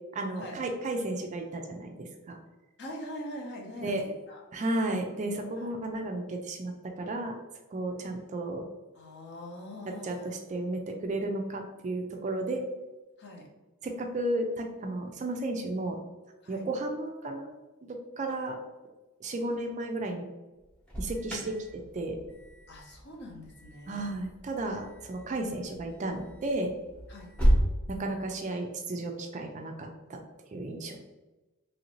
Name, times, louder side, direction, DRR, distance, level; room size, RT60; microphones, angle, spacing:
voice 1, 0.1-2.4 3.8-4.0 4.5-7.4 7.7-8.6 10.0-12.6 13.8-16.0 16.5-17.5 17.9-18.6 19.2-20.2 21.0-22.2 23.9-26.7 27.9-30.2 30.5-31.0, right 2 dB, 30° right, 4 dB, 0.3 m, -33 dB
voice 2, 2.8-4.4 5.6-5.8 8.9-10.2 13.2-13.5 16.4-16.6 22.7-24.1 27.1-27.3, left 1 dB, 50° left, 0 dB, 0.7 m, -43 dB
Alarm, 20.6-27.7, equal, 5° left, 0.8 m, -32 dB
3.1 x 2.6 x 3.0 m, 1.1 s
head